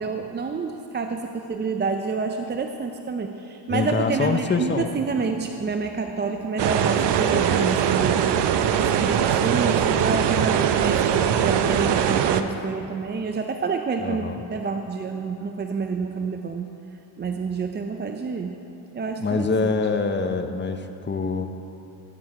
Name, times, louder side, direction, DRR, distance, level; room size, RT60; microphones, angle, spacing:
voice 1, 0.0-8.2 8.8-16.7 17.2-18.6 18.9-19.7, right 4 dB, 25° right, 5 dB, 0.5 m, -28 dB
voice 2, 3.7-4.9 14.0-14.4 19.2-21.5, left 4 dB, 25° left, 7 dB, 0.8 m, -25 dB
sound 1, 6.6-12.4, right 8 dB, 60° right, 0.8 m, -21 dB
16.0 x 9.8 x 4.8 m, 2.9 s
cardioid pair, 110°, 47 cm